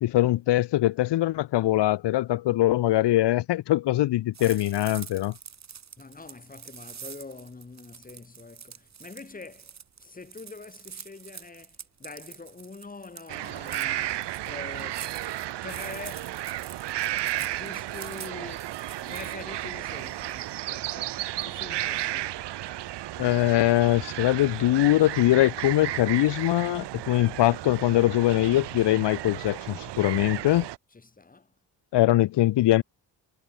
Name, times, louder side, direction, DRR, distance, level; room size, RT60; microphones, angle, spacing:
voice 1, 0.0-5.3 23.2-30.6 31.9-32.8, left 15 dB, 80° left, 0.7 m, -22 dB
sound 1, 4.3-20.6, right 7 dB, 40° right, 2.8 m, -46 dB
voice 2, 6.0-15.2 15.6-16.4 17.3-18.8 19.1-22.4 30.9-31.5, left 3 dB, 20° left, 3.8 m, -44 dB
sound 2, 13.3-30.8, right 15 dB, 80° right, 0.7 m, -34 dB
wide cardioid pair, 175°, 41 cm